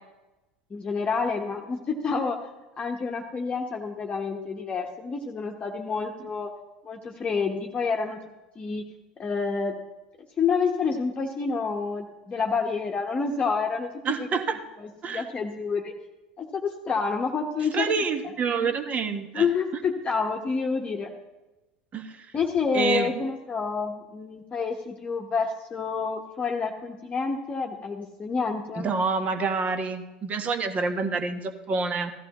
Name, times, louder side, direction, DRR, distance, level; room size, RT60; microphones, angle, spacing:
voice 1, 0.7-2.4 2.8-6.5 6.8-8.2 8.5-8.8 9.2-9.8 10.4-13.9 14.2-14.3 14.8-15.9 16.4-18.0 18.6-18.7 19.3-21.1 22.3-28.9, left 5 dB, 25° left, 1 dB, 1.1 m, -28 dB
voice 2, 14.0-14.6 15.0-15.3 17.7-19.5 21.9-22.3 22.7-23.1 28.8-32.1, right 4 dB, 35° right, 8 dB, 1.3 m, -27 dB
16.0 x 14.0 x 3.0 m, 1.1 s
hypercardioid pair, 80°, 4 cm